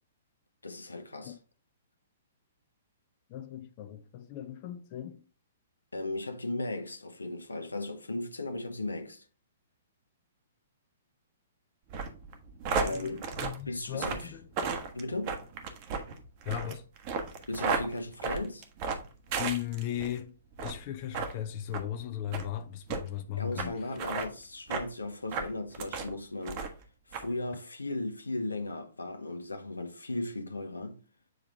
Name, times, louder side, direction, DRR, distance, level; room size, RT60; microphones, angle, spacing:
voice 1, 0.6-1.4 5.9-9.3 12.8-13.3 13.7-14.3 14.9-15.4 17.5-18.7 23.4-26.7 27.1-31.0, left 2 dB, 90° left, 1.0 m, -36 dB
voice 2, 3.3-5.3 12.7-14.4 16.5-16.8 19.4-20.3 20.6-23.9, left 11 dB, 40° left, 0.6 m, -37 dB
sound 1, 11.9-20.1 20.5-20.8 21.1-21.3 21.7-21.9 22.3-22.5 22.9-23.0 23.6-23.7 24.0-24.3 24.7-24.9 25.3-26.1 26.4-26.8 27.1-27.3, right 5 dB, 40° right, 1.2 m, -34 dB
7.7 x 3.5 x 3.6 m
figure-of-eight pair, 120°, 0 cm